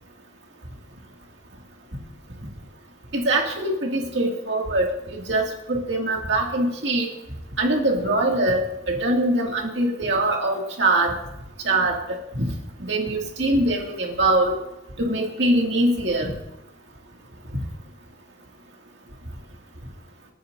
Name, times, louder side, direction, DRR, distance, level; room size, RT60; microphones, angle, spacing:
voice 1, 3.1-7.1 7.6-11.1 11.6-12.0 12.3-12.5 12.8-14.6 15.0-16.3, right 1 dB, 60° right, 0 dB, 2.3 m, -23 dB
27.5 x 9.2 x 2.7 m, 0.91 s
head